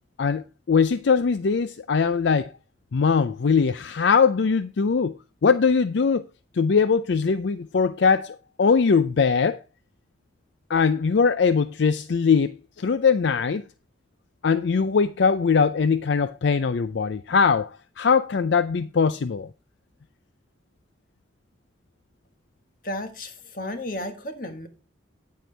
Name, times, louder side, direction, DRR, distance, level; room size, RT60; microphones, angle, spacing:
voice 1, 0.2-2.5 2.9-5.2 5.4-6.2 6.5-9.6 10.7-13.6 14.4-19.5, left 5 dB, 70° left, 0.4 m, -21 dB
voice 2, 22.8-24.7, left 1 dB, 45° left, 1.5 m, -33 dB
9.4 x 9.3 x 3.3 m
head